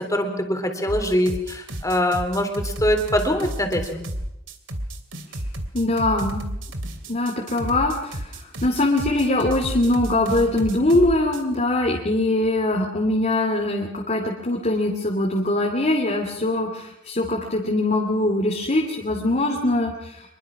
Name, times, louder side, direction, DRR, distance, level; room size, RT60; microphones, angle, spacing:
voice 1, 0.0-4.1, equal, 15° left, 5 dB, 3.6 m, -23 dB
sound 1, 0.9-11.6, right 1 dB, 75° right, 2.8 m, -32 dB
voice 2, 5.7-6.4 7.1-20.1, left 1 dB, 40° left, 0 dB, 2.7 m, -22 dB
25.5 x 22.0 x 6.0 m, 0.87 s
head